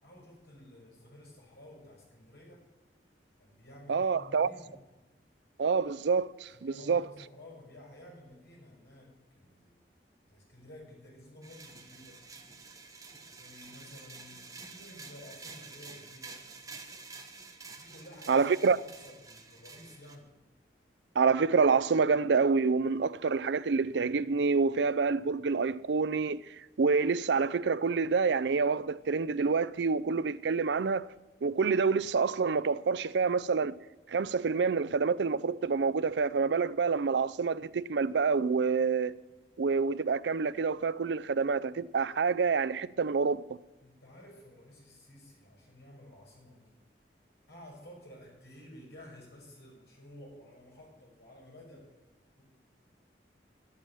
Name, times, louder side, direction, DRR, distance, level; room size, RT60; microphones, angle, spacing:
voice 1, 0.0-2.7 3.4-4.8 6.5-9.8 10.3-12.2 13.3-16.4 17.7-20.3 43.8-46.7 47.5-51.9 52.4-52.5, left 1 dB, 70° left, 6.2 m, -52 dB
voice 2, 3.9-4.5 5.6-7.1 18.3-18.8 21.2-31.1 31.4-33.8 34.1-39.2 39.6-43.6, right 5 dB, 80° right, 0.5 m, -27 dB
sound 1, 11.4-20.2, right 4 dB, 20° right, 1.3 m, -49 dB
12.0 x 8.6 x 8.8 m
head